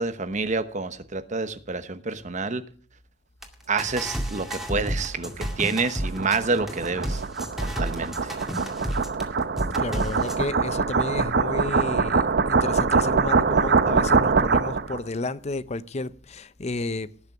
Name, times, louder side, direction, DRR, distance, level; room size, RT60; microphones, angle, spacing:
voice 1, 0.0-2.6 3.7-7.2 7.8-8.1, right 4 dB, 40° right, 1.0 m, -28 dB
sound 1, 3.4-3.5 3.8-9.2 9.6-10.4, equal, ahead, 2.1 m, -32 dB
sound 2, 5.0-15.0, right 4 dB, 60° right, 0.7 m, -23 dB
voice 2, 9.8-17.1, left 3 dB, 35° left, 0.6 m, -32 dB
18.5 x 6.7 x 6.0 m
head